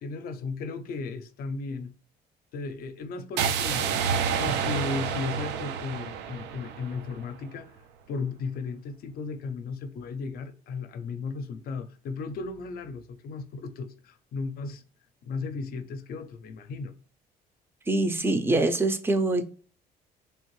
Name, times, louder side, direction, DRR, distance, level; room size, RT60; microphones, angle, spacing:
voice 1, 0.0-1.9 2.5-3.9 4.4-7.7 8.1-14.8 15.2-16.9, left 4 dB, 60° left, 0.5 m, -35 dB
sound 1, 3.4-7.4, right 7 dB, 85° right, 0.4 m, -29 dB
voice 2, 17.9-19.5, right 2 dB, 15° right, 0.4 m, -24 dB
3.3 x 2.5 x 3.1 m
cardioid pair, 110°, 17 cm